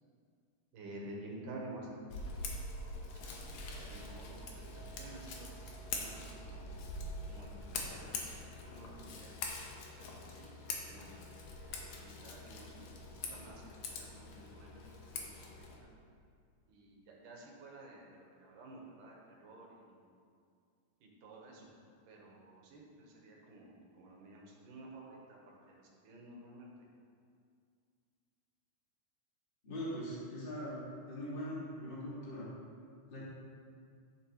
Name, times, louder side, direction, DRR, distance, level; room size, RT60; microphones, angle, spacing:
voice 1, 0.7-1.9 3.1-3.4 3.9-5.7 6.0-6.7 7.3-9.3 10.0-10.5 10.9-12.9 13.2-14.9 15.1-15.7 16.7-20.0 21.0-21.7 22.1-26.7, right 2 dB, 75° right, -2 dB, 2.8 m, -52 dB
Scissors, 2.1-15.8, left 3 dB, 70° left, 2.0 m, -44 dB
voice 2, 29.6-30.8 31.1-32.5 33.1-33.2, equal, 20° left, -8 dB, 1.8 m, -41 dB
11.5 x 7.3 x 3.2 m, 2.2 s
omnidirectional pair, 3.8 m